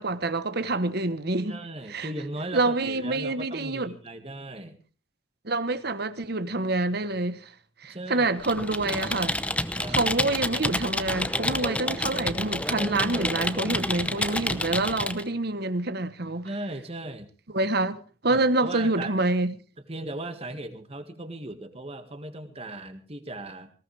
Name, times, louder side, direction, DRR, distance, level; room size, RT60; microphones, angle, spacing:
voice 1, 0.0-1.6 1.9-2.1 2.5-3.9 5.4-7.5 7.8-9.4 9.9-16.5 17.5-19.5, right 2 dB, 55° right, 1.2 m, -27 dB
voice 2, 1.5-4.8 7.9-8.3 9.8-10.0 12.7-13.3 13.7-14.2 16.4-17.3 18.3-19.1 19.9-23.7, right 1 dB, 30° right, 1.9 m, -37 dB
Computer keyboard, 8.4-15.2, left 1 dB, 5° left, 0.8 m, -29 dB
19.5 x 18.0 x 3.4 m
head